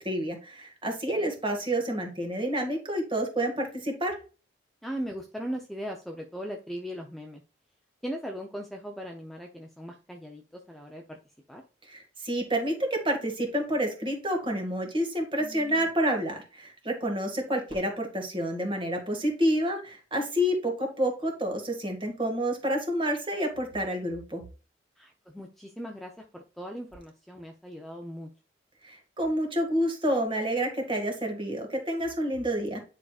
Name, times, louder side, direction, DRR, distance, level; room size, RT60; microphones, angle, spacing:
voice 1, 0.0-4.2 11.8-24.4 28.8-32.8, equal, 25° right, 3 dB, 1.8 m, -29 dB
voice 2, 4.8-7.4 8.0-11.2 11.5-11.6 15.4-15.9 25.0-28.3, equal, ahead, 1 dB, 0.6 m, -39 dB
9.5 x 4.9 x 2.4 m, 0.35 s
head